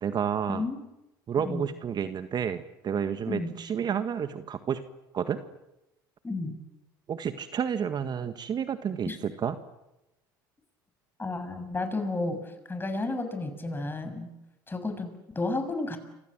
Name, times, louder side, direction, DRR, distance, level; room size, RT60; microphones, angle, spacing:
voice 1, 0.0-0.6 1.3-4.8 5.1-5.4 7.1-9.5, right 8 dB, 40° right, 10 dB, 1.7 m, -30 dB
voice 2, 6.2-6.6 9.1-9.2 11.2-14.3 14.7-16.0, left 2 dB, 20° left, 8 dB, 6.8 m, -32 dB
30.0 x 26.0 x 7.7 m, 0.91 s
hypercardioid pair, 75°, 11 cm